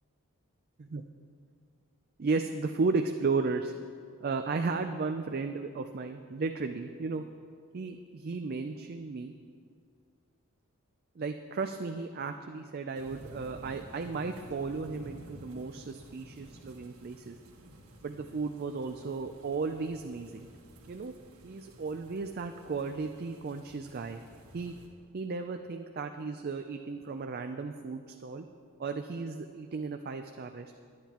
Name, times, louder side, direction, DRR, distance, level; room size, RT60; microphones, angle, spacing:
voice 1, 2.2-3.7 4.2-7.2 7.7-9.3 11.2-17.4 18.0-20.5 20.9-21.1 21.4-24.2 24.5-24.7 25.1-28.5 28.8-30.7, right 4 dB, 45° right, 6 dB, 0.4 m, -34 dB
sound 1, 12.9-24.9, right 1 dB, 75° right, 1.5 m, -52 dB
21.5 x 9.1 x 3.0 m, 2.2 s
head